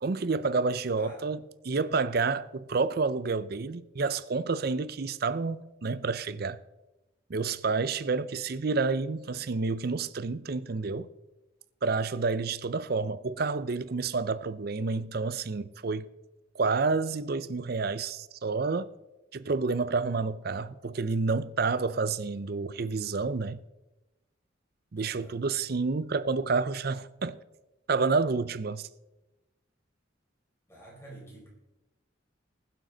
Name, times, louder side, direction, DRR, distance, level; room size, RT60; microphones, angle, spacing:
voice 1, 0.0-6.6 7.3-11.1 11.8-16.0 16.5-18.9 19.3-23.6 24.9-27.4 27.9-28.9, right 4 dB, 50° right, 0.5 m, -29 dB
voice 2, 0.9-1.3 24.9-25.4 30.7-31.5, right 1 dB, 15° left, 4.8 m, -49 dB
20.5 x 7.6 x 3.9 m
head